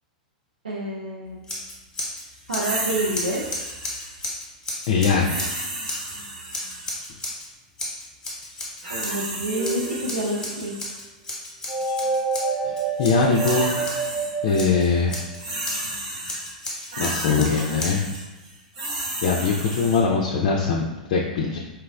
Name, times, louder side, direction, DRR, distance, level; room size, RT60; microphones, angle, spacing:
voice 1, 0.6-1.4 2.5-3.5 8.9-10.8, right 1 dB, 75° right, -6 dB, 0.5 m, -28 dB
Scissors, 1.4-2.2 2.5-6.1 6.5-7.5 7.8-9.3 9.6-14.1 14.5-15.9 16.2-18.2, left 1 dB, 15° left, 0.9 m, -34 dB
sound 1, 2.6-4.2 5.2-7.1 8.5-11.0 11.7-11.9 13.0-14.6 14.9-20.0, right 1 dB, 55° right, 1.0 m, -33 dB
voice 2, 4.9-5.5 12.6-13.9 14.4-15.3 17.0-18.0 19.2-21.6, left 5 dB, 50° left, -1 dB, 0.3 m, -22 dB
sound 2, 9.5-10.2 11.7-15.5, right 4 dB, 10° right, 0.7 m, -28 dB
4.3 x 2.0 x 2.3 m, 1.1 s
figure-of-eight pair, 95°, 4 cm